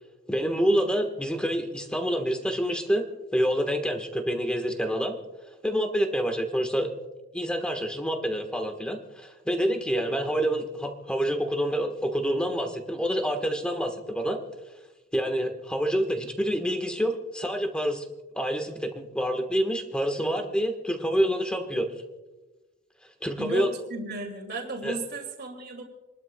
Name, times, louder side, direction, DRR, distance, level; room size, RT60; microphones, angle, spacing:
voice 1, 0.3-3.0 3.3-5.2 5.6-6.9 7.3-14.4 15.1-18.0 18.4-21.9 23.2-23.7 24.8-25.0, equal, 5° left, 5 dB, 1.3 m, -27 dB
voice 2, 23.4-25.8, right 2 dB, 50° right, 1 dB, 2.5 m, -34 dB
29.0 x 12.0 x 2.3 m, 1.1 s
head